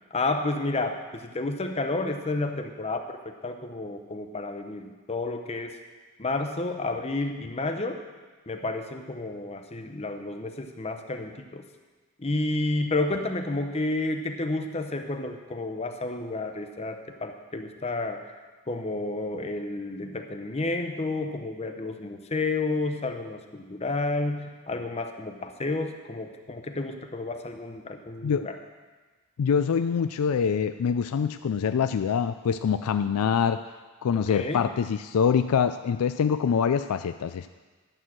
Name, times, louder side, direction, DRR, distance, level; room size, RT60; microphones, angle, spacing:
voice 1, 0.1-5.8 6.2-8.0 8.5-11.6 12.2-18.3 18.7-28.6 34.1-34.6, left 2 dB, 30° left, 5 dB, 0.7 m, -31 dB
voice 2, 29.4-33.6 34.0-37.5, left 7 dB, 85° left, 9 dB, 0.4 m, -25 dB
12.0 x 6.4 x 7.5 m, 1.3 s
head